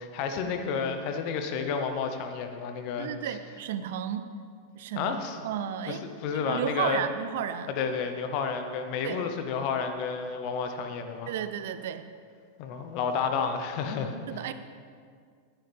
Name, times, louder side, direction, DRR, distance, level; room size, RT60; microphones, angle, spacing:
voice 1, 0.0-3.1 5.0-5.4 5.9-7.0 7.8-11.3 12.6-14.2, left 6 dB, 50° left, 6 dB, 1.0 m, -31 dB
voice 2, 3.0-4.3 4.8-5.1 5.4-6.1 6.3-7.7 9.0-9.3 11.3-12.1 14.3-14.5, right 9 dB, 65° right, 11 dB, 0.5 m, -33 dB
9.5 x 9.1 x 3.5 m, 2.1 s
hypercardioid pair, 95°, 0 cm